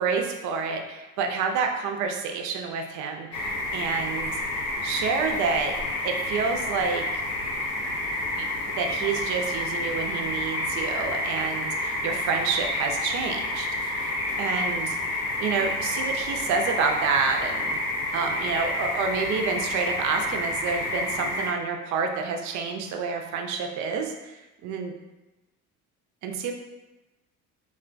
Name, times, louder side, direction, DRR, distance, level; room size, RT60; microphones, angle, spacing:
voice 1, 0.0-4.3 4.8-5.8 6.0-7.0 8.4-8.5 8.7-17.8 18.1-24.9 26.2-26.5, right 5 dB, 45° right, 4 dB, 0.4 m, -28 dB
sound 1, 3.3-21.5, left 1 dB, 85° left, 0.6 m, -29 dB
2.3 x 2.1 x 2.4 m, 1.1 s
hypercardioid pair, 60°, 44 cm